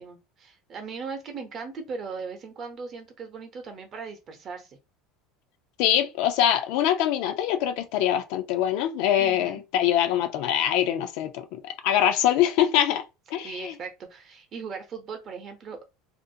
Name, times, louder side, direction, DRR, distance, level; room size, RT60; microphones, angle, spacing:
voice 1, 0.0-4.8 9.2-9.6 13.4-15.9, right 5 dB, 40° right, 0.7 m, -38 dB
voice 2, 5.8-13.0 13.3-13.8, left 11 dB, 70° left, 0.5 m, -24 dB
2.5 x 2.1 x 2.6 m
supercardioid pair, 120°, 0 cm